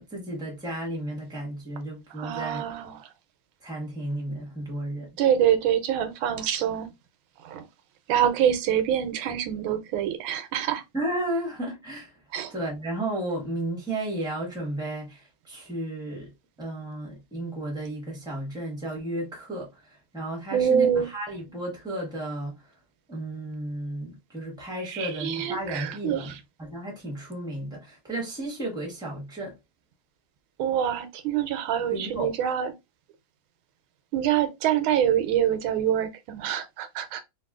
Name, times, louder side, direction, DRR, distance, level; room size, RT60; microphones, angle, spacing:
voice 1, 0.0-2.7 3.6-5.1 10.9-12.1 12.5-16.3 16.6-22.6 23.1-26.3 26.6-29.6 31.9-32.5, right 1 dB, 5° right, 0.6 m, -33 dB
voice 2, 2.2-3.1 5.2-6.9 7.4-7.7 8.1-10.8 12.3-12.5 20.5-21.1 24.9-26.4 30.6-32.7 34.1-37.2, right 9 dB, 90° right, 1.4 m, -25 dB
3.1 x 2.6 x 2.3 m
omnidirectional pair, 2.2 m